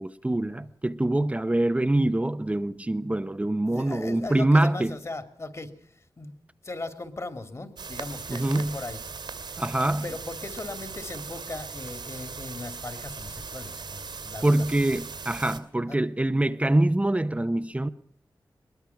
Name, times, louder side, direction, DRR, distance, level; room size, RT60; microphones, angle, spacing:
voice 1, 0.0-5.0 8.3-8.8 9.6-10.1 14.4-17.9, right 1 dB, 15° right, 0.8 m, -24 dB
voice 2, 3.4-6.3 6.6-9.0 9.5-9.6 10.0-14.7 15.9-16.0, left 2 dB, 40° left, 2.6 m, -38 dB
sound 1, 7.8-15.6, right 5 dB, 80° right, 2.8 m, -39 dB
22.0 x 21.5 x 5.8 m
wide cardioid pair, 90°, 8 cm